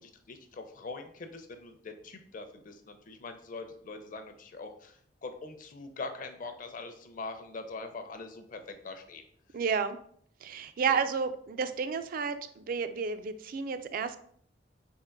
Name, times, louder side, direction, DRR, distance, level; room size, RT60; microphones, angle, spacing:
voice 1, 0.0-9.2 10.9-11.0, left 3 dB, 50° left, 7 dB, 0.6 m, -43 dB
voice 2, 9.5-10.0 10.4-14.2, right 5 dB, 50° right, 11 dB, 0.3 m, -31 dB
3.6 x 2.9 x 4.4 m, 0.62 s
head